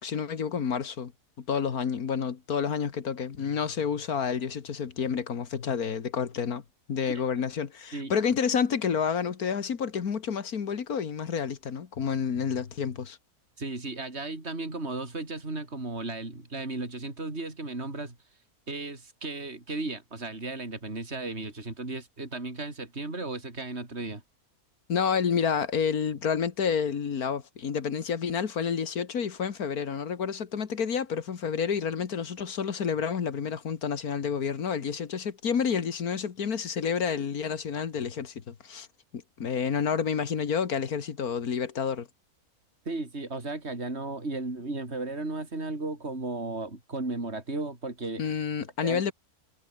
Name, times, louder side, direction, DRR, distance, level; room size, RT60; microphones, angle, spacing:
voice 1, 0.0-1.1 1.4-6.6 6.9-13.2 24.9-38.9 39.1-42.1 48.2-49.1, left 6 dB, 75° left, 2.1 m, -29 dB
voice 2, 13.6-18.2 18.7-24.2 42.9-48.2 48.8-49.0, right 2 dB, 45° right, 4.6 m, -35 dB
omnidirectional pair, 1.6 m